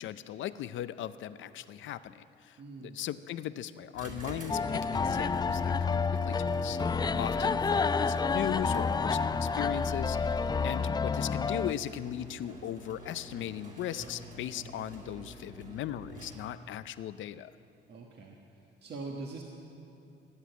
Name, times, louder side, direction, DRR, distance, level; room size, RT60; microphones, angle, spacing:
voice 1, 0.0-17.5, left 11 dB, 75° left, 14 dB, 0.6 m, -38 dB
voice 2, 2.6-3.0 6.9-7.2 14.6-14.9 17.9-18.4 18.8-19.4, right 3 dB, 60° right, 0 dB, 1.5 m, -43 dB
sound 1, 3.9-16.7, right 1 dB, 40° right, 3.2 m, -47 dB
sound 2, 4.5-11.7, left 5 dB, 20° left, 0.3 m, -29 dB
18.5 x 8.2 x 9.3 m, 2.7 s
cardioid pair, 90°, 20 cm